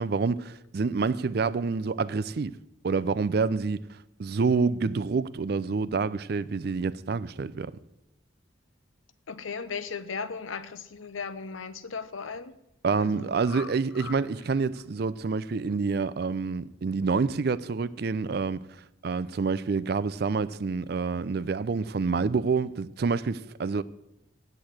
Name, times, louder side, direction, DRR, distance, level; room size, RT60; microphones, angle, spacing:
voice 1, 0.0-2.5 2.8-3.8 4.2-7.7 12.8-18.6 19.0-23.8, right 4 dB, 50° right, 0.4 m, -27 dB
voice 2, 9.3-12.5 13.0-13.7 14.0-14.2, left 5 dB, 85° left, 0.7 m, -37 dB
8.4 x 7.8 x 8.6 m
head